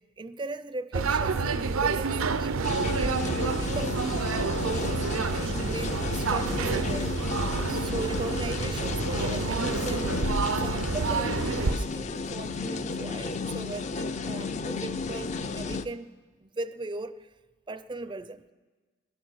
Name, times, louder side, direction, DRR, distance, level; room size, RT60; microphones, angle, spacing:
voice 1, 0.2-2.6 3.4-4.2 4.6-7.1 7.6-16.1 16.4-17.3 17.7-18.4, right 3 dB, 20° right, 14 dB, 0.4 m, -38 dB
sound 1, 0.9-11.8, right 4 dB, 85° right, 0.6 m, -28 dB
sound 2, 2.6-15.9, left 4 dB, 35° left, 0.4 m, -33 dB
20.0 x 11.5 x 6.3 m, 1.4 s
head